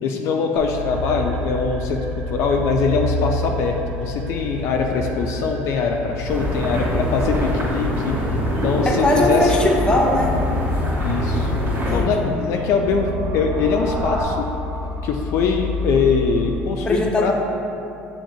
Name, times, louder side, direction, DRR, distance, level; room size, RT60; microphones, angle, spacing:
voice 1, 0.0-2.0 2.3-8.2 8.6-9.5 11.0-11.5 11.9-14.5 15.0-17.3, left 5 dB, 65° left, 2 dB, 0.3 m, -22 dB
sound 1, 0.6-16.6, left 2 dB, 85° right, 0.5 m, -29 dB
sound 2, 6.3-12.0, equal, 65° right, 1.4 m, -24 dB
sound 3, 8.7-14.2, right 1 dB, 45° right, 0.7 m, -35 dB
voice 2, 8.8-10.4 11.8-12.4 16.8-17.3, left 1 dB, 15° left, -1 dB, 0.6 m, -20 dB
7.0 x 2.8 x 2.7 m, 2.9 s
cardioid pair, 110°, 5 cm